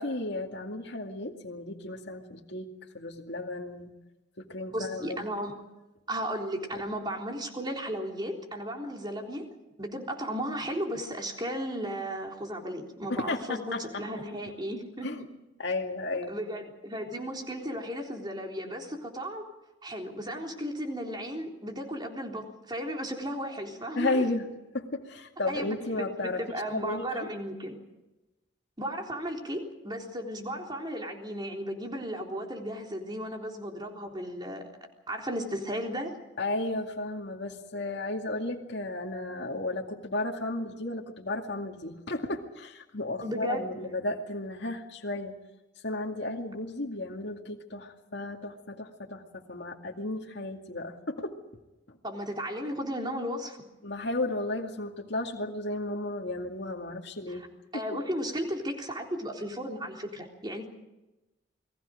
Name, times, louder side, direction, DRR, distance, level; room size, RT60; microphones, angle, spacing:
voice 1, 0.0-3.9 4.4-5.2 6.7-6.8 13.1-14.0 15.0-15.3 15.6-16.4 23.9-24.5 24.7-26.4 26.7-27.3 36.4-45.4 45.8-51.4 51.9-52.0 53.8-57.5 57.7-58.0, left 2 dB, 60° left, 1 dB, 2.3 m, -34 dB
voice 2, 4.7-5.5 6.1-9.5 9.8-15.1 16.3-19.4 19.8-24.3 25.5-27.8 28.8-34.7 35.1-36.2 43.2-43.8 52.0-53.6 57.3-57.4 57.7-60.7, equal, 20° right, 2 dB, 3.7 m, -35 dB
29.5 x 21.0 x 5.1 m, 1.0 s
head